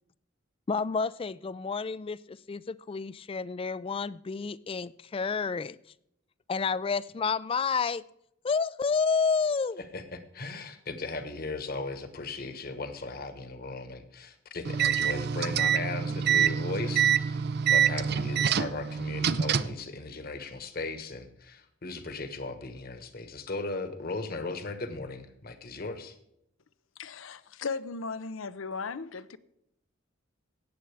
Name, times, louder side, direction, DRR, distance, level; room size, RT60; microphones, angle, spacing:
voice 1, 0.7-5.8 6.5-8.0 8.4-9.8, left 5 dB, 25° left, 0.3 m, -30 dB
voice 2, 9.9-17.4 17.7-26.1, left 3 dB, 50° left, 1.3 m, -37 dB
sound 1, 14.6-19.8, right 8 dB, 55° right, 0.5 m, -26 dB
voice 3, 27.0-29.4, left 4 dB, 80° left, 0.7 m, -36 dB
17.5 x 7.8 x 3.4 m
head